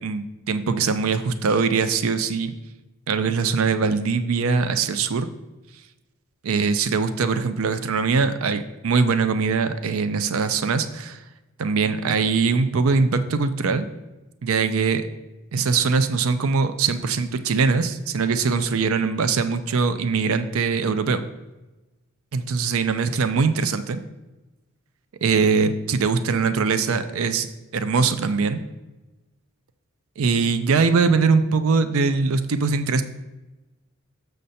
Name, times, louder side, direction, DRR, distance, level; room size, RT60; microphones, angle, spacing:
voice 1, 0.0-2.5 3.1-5.3 6.4-11.2 11.6-13.9 14.4-15.1 15.5-21.2 22.3-24.0 25.2-27.5 27.7-28.6 30.2-33.0, right 4 dB, 75° right, 11 dB, 0.5 m, -22 dB
6.6 x 6.5 x 4.2 m, 1.1 s
head